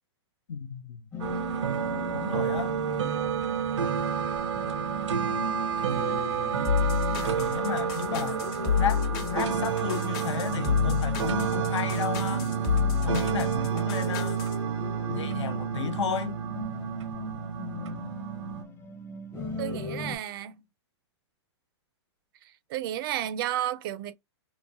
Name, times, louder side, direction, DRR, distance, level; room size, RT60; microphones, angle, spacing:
voice 1, 0.5-1.0 2.1-2.8 5.8-6.9 7.2-8.4 8.8-12.5 13.0-14.4 15.1-16.4, left 7 dB, 80° left, 0.6 m, -33 dB
sound 1, 1.1-20.2, left 2 dB, 15° left, 0.7 m, -39 dB
sound 2, 1.2-18.6, right 8 dB, 85° right, 0.7 m, -30 dB
sound 3, 6.6-14.6, left 7 dB, 45° left, 0.9 m, -29 dB
voice 2, 19.6-20.6 22.7-24.1, right 12 dB, 50° right, 0.4 m, -32 dB
3.0 x 2.1 x 2.3 m
hypercardioid pair, 125°, 15 cm